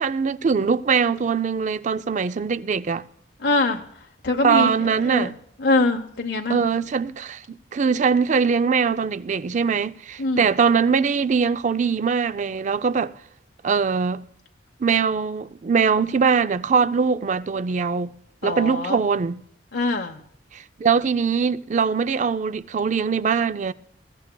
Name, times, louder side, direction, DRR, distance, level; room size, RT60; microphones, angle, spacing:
voice 1, 0.0-3.0 4.4-5.3 6.5-13.1 13.6-14.2 14.8-18.1 18.4-19.4 20.5-23.7, right 5 dB, 45° right, 0.4 m, -22 dB
voice 2, 3.4-3.8 4.2-6.6 10.2-10.5 18.4-19.0 19.7-20.2, left 2 dB, 65° left, 0.8 m, -24 dB
20.5 x 15.5 x 2.2 m
head